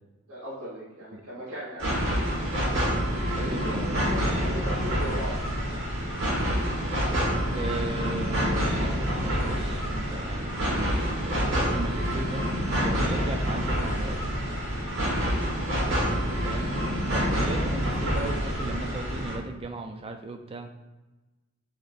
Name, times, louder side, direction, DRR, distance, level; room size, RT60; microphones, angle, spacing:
voice 1, 0.3-1.9 3.3-5.3, equal, 80° right, -9 dB, 1.2 m, -37 dB
sound 1, 1.8-19.3, equal, 60° right, 1.4 m, -27 dB
voice 2, 3.4-3.9 7.5-12.4 12.8-14.2 16.3-20.7, right 2 dB, 25° right, 5 dB, 0.4 m, -37 dB
6.6 x 3.0 x 2.5 m, 1.1 s
head